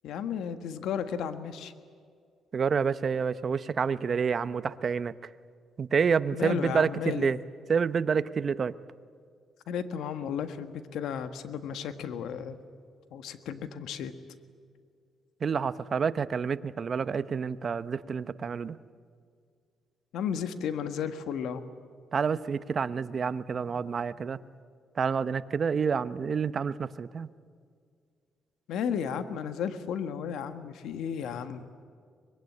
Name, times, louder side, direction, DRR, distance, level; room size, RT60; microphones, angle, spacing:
voice 1, 0.0-1.7 6.3-7.4 9.7-12.6 13.1-14.1 20.1-21.6 28.7-31.7, left 8 dB, 80° left, 9 dB, 1.6 m, -33 dB
voice 2, 2.5-5.3 5.8-7.4 7.7-8.7 15.4-18.8 22.1-24.4 25.0-27.3, right 6 dB, 45° right, 14 dB, 0.9 m, -28 dB
24.0 x 21.5 x 9.8 m, 2.1 s
cardioid pair, 90°, 0 cm